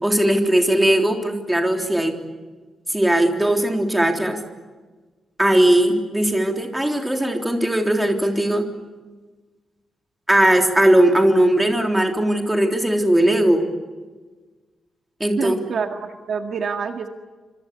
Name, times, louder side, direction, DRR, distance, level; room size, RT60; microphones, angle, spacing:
voice 1, 0.0-2.1 2.9-4.4 5.4-8.7 10.3-13.6 15.2-15.6, right 1 dB, 5° right, 3 dB, 3.5 m, -18 dB
voice 2, 15.4-17.1, right 5 dB, 50° right, 5 dB, 1.9 m, -27 dB
26.5 x 26.5 x 8.4 m, 1.3 s
wide cardioid pair, 180°, 0 cm